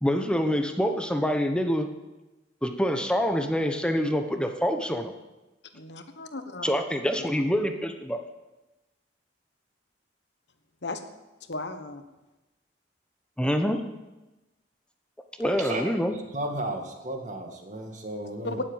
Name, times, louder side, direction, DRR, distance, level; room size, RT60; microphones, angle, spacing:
voice 1, 0.0-1.9 2.6-5.1 6.6-8.2 13.4-13.8 15.4-16.2, equal, 5° left, 6 dB, 0.9 m, -26 dB
voice 2, 5.7-6.7 7.1-7.3 10.8-11.0 11.5-12.0 18.4-18.6, left 2 dB, 80° left, 8 dB, 1.3 m, -35 dB
voice 3, 16.3-18.6, right 1 dB, 45° right, 3 dB, 2.0 m, -33 dB
18.0 x 7.8 x 7.2 m, 1.0 s
head